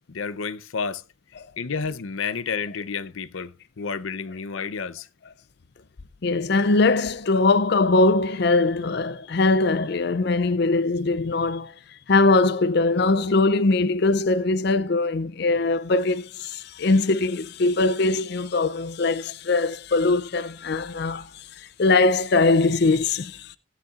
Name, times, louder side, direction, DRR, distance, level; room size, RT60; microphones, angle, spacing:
voice 1, 0.1-1.0 1.6-5.1, left 5 dB, 90° left, 0.7 m, -30 dB
voice 2, 6.2-11.7 12.1-23.6, left 3 dB, 55° left, 0.5 m, -21 dB
16.5 x 9.9 x 2.5 m
head